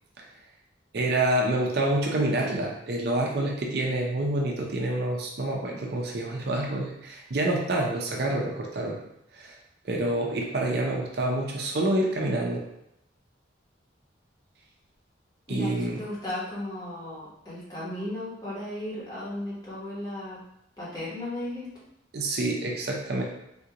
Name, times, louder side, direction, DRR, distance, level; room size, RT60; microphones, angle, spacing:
voice 1, 0.9-9.0 9.3-9.6 9.8-12.6 15.5-16.0 22.1-23.2, right 1 dB, 60° right, -1 dB, 0.5 m, -27 dB
voice 2, 15.5-20.4 20.8-21.7, left 1 dB, 20° left, -8 dB, 1.1 m, -35 dB
3.5 x 2.4 x 2.8 m, 0.81 s
head